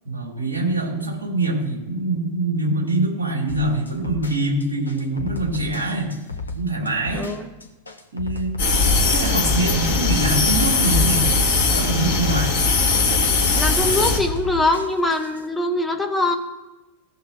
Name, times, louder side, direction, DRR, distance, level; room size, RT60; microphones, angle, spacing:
voice 1, 0.0-6.1 6.5-7.3 8.1-8.5 9.0-11.2 11.7-12.6, right 2 dB, 70° right, -3 dB, 2.8 m, -24 dB
sound 1, 3.5-15.5, left 3 dB, 80° left, 0.8 m, -34 dB
voice 2, 7.1-7.5 13.6-16.3, left 2 dB, 5° left, 3 dB, 1.2 m, -22 dB
sound 2, 8.6-14.2, left 3 dB, 55° left, 2.1 m, -19 dB
15.0 x 6.5 x 2.8 m, 1.0 s
figure-of-eight pair, 90°, 0 cm